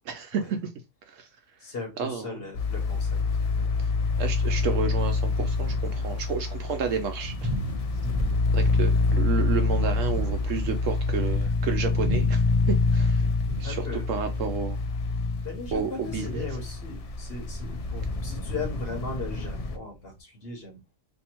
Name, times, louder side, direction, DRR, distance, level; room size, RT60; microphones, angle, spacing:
voice 1, 0.1-0.6 1.1-1.3 2.0-2.5 4.2-7.5 8.5-13.3 13.6-13.8 14.1-14.8 15.7-16.5, right 6 dB, 75° right, 1.0 m, -31 dB
voice 2, 1.6-3.2 3.5-3.7 8.0-8.4 13.6-14.0 15.4-21.0, left 3 dB, 50° left, 1.2 m, -38 dB
sound 1, 2.5-19.8, left 4 dB, 75° left, 0.3 m, -26 dB
Thunder, 4.9-20.2, equal, 30° right, 0.8 m, -39 dB
2.7 x 2.7 x 4.3 m
omnidirectional pair, 1.4 m